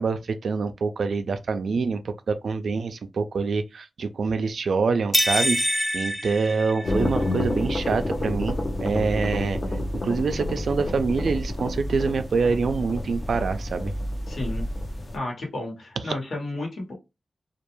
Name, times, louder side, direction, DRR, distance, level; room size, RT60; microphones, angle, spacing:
voice 1, 0.0-9.6 10.0-13.9, right 4 dB, 80° right, 0.3 m, -26 dB
sound 1, 5.1-7.3, equal, 5° left, 0.3 m, -25 dB
sound 2, 6.8-15.2, left 1 dB, 50° left, 0.7 m, -29 dB
voice 2, 14.3-14.7 15.1-16.9, left 2 dB, 80° left, 1.2 m, -32 dB
2.3 x 2.2 x 3.0 m
cardioid pair, 55°, 0 cm